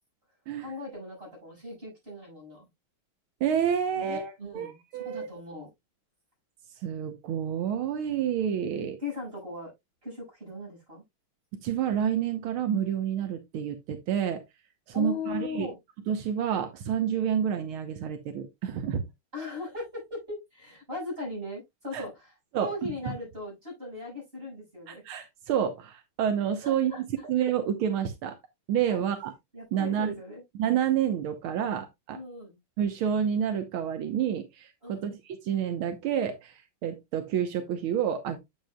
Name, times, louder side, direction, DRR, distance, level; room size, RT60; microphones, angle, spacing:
voice 1, 0.6-2.7 3.9-5.7 9.0-9.7 10.0-11.0 14.9-15.8 19.3-25.0 26.6-27.5 28.9-29.0 29.5-30.4 32.1-32.6 34.8-35.1, left 3 dB, 25° right, 6.5 m, -39 dB
voice 2, 3.4-5.3 6.8-9.0 11.6-14.4 15.0-15.7 16.1-19.0 21.9-22.0 22.5-22.7 24.9-28.4 28.7-29.3 29.7-30.1 30.6-32.2 32.8-38.4, right 9 dB, 85° right, 1.8 m, -29 dB
8.4 x 8.0 x 2.2 m
omnidirectional pair, 2.3 m